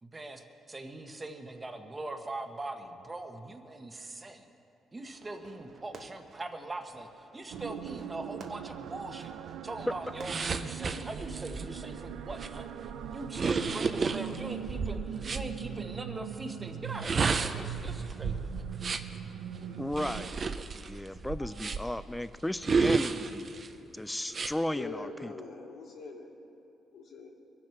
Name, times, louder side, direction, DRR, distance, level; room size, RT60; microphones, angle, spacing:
voice 1, 0.0-4.5 4.9-9.3 9.6-12.6 13.1-18.6, right 2 dB, 25° right, 5 dB, 1.2 m, -41 dB
Fireworks, 5.0-11.0, right 5 dB, 60° right, 1.0 m, -53 dB
sound 1, 7.5-20.3, right 9 dB, 90° right, 0.5 m, -41 dB
sound 2, 10.2-15.5 16.8-19.2 19.9-22.0 22.6-23.7 24.3-24.5, right 4 dB, 40° right, 0.7 m, -32 dB
voice 2, 19.8-20.3 20.9-23.4 23.9-25.3, left 1 dB, 10° left, 14 dB, 0.5 m, -34 dB
voice 3, 24.7-26.3 26.9-27.3, left 3 dB, 70° left, -2 dB, 2.8 m, -43 dB
23.0 x 7.7 x 5.9 m, 2.8 s
cardioid pair, 90°, 0 cm